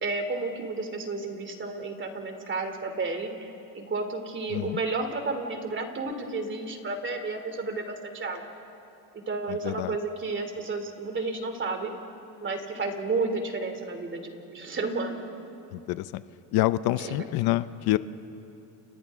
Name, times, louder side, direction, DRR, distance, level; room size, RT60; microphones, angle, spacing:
voice 1, 0.0-8.5 9.1-11.9 12.4-15.2 17.0-17.2, right 3 dB, 30° right, 5 dB, 2.9 m, -32 dB
voice 2, 9.5-10.0 15.7-16.2 16.5-18.0, left 16 dB, 70° left, 15 dB, 0.7 m, -27 dB
30.0 x 29.5 x 3.6 m, 2.8 s
cardioid pair, 110°, 39 cm